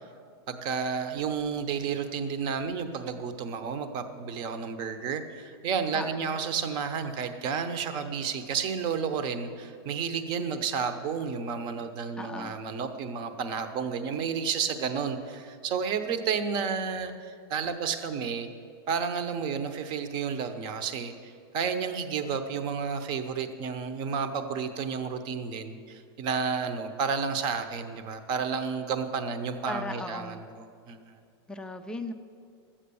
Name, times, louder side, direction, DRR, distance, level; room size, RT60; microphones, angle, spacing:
voice 1, 0.5-18.5 18.9-31.0, right 6 dB, 35° right, 9 dB, 0.9 m, -31 dB
voice 2, 5.9-6.4 12.2-12.6 29.7-30.4 31.5-32.1, left 2 dB, 5° left, 6 dB, 0.4 m, -37 dB
12.5 x 8.7 x 7.0 m, 2.3 s
supercardioid pair, 155°, 14 cm